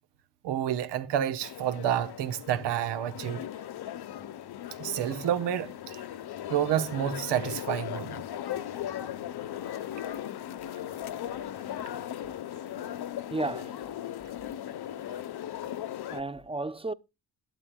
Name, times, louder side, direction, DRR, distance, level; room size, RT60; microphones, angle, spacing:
voice 1, 0.4-3.4 4.8-6.0 6.5-8.2, right 10 dB, 90° right, 1.2 m, -29 dB
sound 1, 1.4-16.2, left 11 dB, 65° left, 1.1 m, -38 dB
voice 2, 13.3-13.8 16.1-16.9, right 2 dB, 15° right, 0.8 m, -33 dB
14.0 x 12.0 x 2.3 m
cardioid pair, 70°, 41 cm